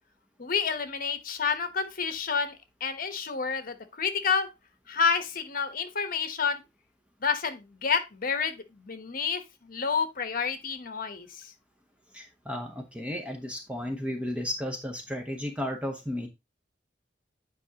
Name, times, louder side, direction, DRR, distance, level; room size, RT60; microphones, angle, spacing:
voice 1, 0.4-4.5 4.9-6.6 7.2-11.4, left 6 dB, 55° left, 1.0 m, -29 dB
voice 2, 12.1-16.3, left 1 dB, 5° right, 0.9 m, -34 dB
9.0 x 4.9 x 2.8 m
head